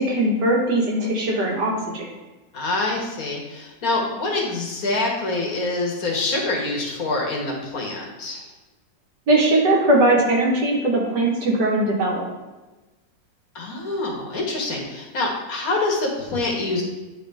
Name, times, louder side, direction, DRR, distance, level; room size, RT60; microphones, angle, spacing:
voice 1, 0.0-2.1 9.3-12.3, right 1 dB, 70° right, -2 dB, 2.0 m, -20 dB
voice 2, 2.5-8.5 13.5-16.8, left 2 dB, 55° left, -1 dB, 1.5 m, -25 dB
10.0 x 3.6 x 3.4 m, 1.2 s
omnidirectional pair, 1.9 m